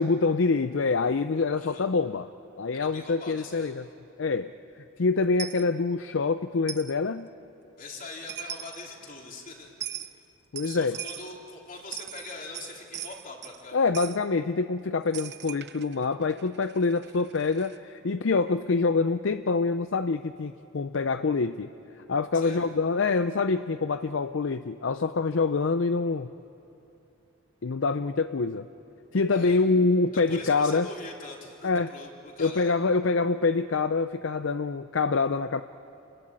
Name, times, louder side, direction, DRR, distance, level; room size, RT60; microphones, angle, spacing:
voice 1, 0.0-2.3 2.6-3.8 4.2-4.5 4.8-7.3 10.5-11.0 13.7-21.7 22.1-26.3 27.6-28.7 29.1-30.9 31.6-31.9 32.4-35.6, left 4 dB, 65° left, 11 dB, 0.6 m, -26 dB
voice 2, 1.6-1.9 2.7-3.7 7.8-10.3 10.6-13.9 22.3-22.7 29.3-29.7 30.1-32.8, left 3 dB, 45° left, -1 dB, 3.8 m, -43 dB
Coin (dropping), 5.4-5.6 6.7-6.9 8.0-8.1 8.3-8.8 9.8-10.1 10.6-11.3 11.8-13.6 13.9-14.2 15.1-17.8, right 11 dB, 55° right, 0.9 m, -39 dB
28.5 x 20.5 x 9.0 m, 2.8 s
head